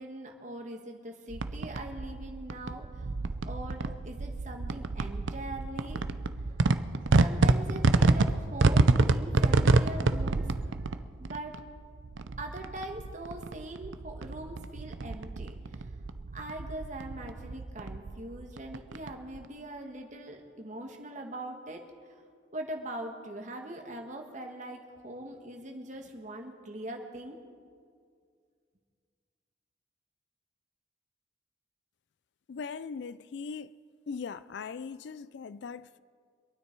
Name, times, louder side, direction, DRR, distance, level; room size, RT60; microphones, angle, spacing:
voice 1, 0.0-3.1 3.4-6.0 7.2-10.4 11.2-11.6 12.4-15.6 16.3-21.8 22.5-27.4, right 1 dB, 40° right, 1.6 m, -41 dB
sound 1, 1.3-19.5, right 3 dB, 75° right, 0.6 m, -28 dB
voice 2, 32.5-33.7 34.1-36.0, left 5 dB, 60° left, 0.4 m, -39 dB
25.0 x 9.6 x 4.6 m
head